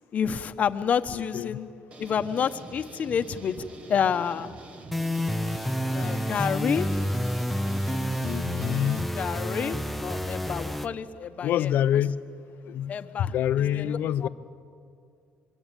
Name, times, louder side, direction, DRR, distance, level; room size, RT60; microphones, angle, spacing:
voice 1, 0.1-1.7 2.0-4.6 5.9-7.0 9.1-12.0 12.9-14.3, left 7 dB, 45° left, 10 dB, 1.1 m, -29 dB
voice 2, 1.1-1.6 8.2-9.1 11.4-12.1 12.7-13.0 13.3-14.3, left 10 dB, 65° left, 14 dB, 0.8 m, -26 dB
sound 1, 1.9-9.0, right 3 dB, 35° right, 1.7 m, -45 dB
sound 2, 4.9-10.9, equal, ahead, 0.8 m, -29 dB
25.0 x 23.0 x 9.1 m, 2.3 s
cardioid pair, 115°, 3 cm